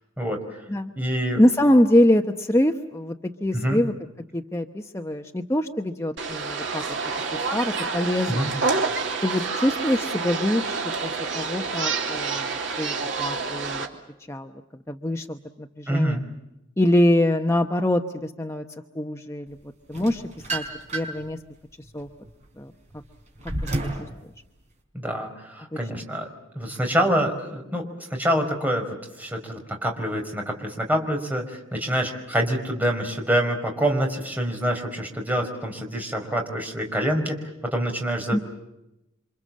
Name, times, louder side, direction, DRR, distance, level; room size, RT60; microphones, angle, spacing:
voice 1, 0.2-0.6 0.9-1.4 3.5-3.8 8.3-8.5 15.9-16.2 24.9-26.3 26.5-38.4, equal, 10° right, 2 dB, 4.8 m, -26 dB
voice 2, 1.4-3.2 3.4-3.9 4.3-6.8 7.5-8.5 9.2-13.8 14.3-14.5 14.9-16.2 16.8-18.6 18.9-19.6 19.9-20.2 20.5-20.6 20.9-21.4 21.9-22.1 22.6-22.7 38.3-38.4, left 1 dB, 15° left, 4 dB, 1.0 m, -24 dB
sound 1, 6.2-13.9, right 4 dB, 65° right, 3.1 m, -28 dB
sound 2, 19.9-21.3 21.8-24.1, right 2 dB, 35° right, 5.4 m, -31 dB
29.0 x 26.0 x 7.6 m, 0.91 s
head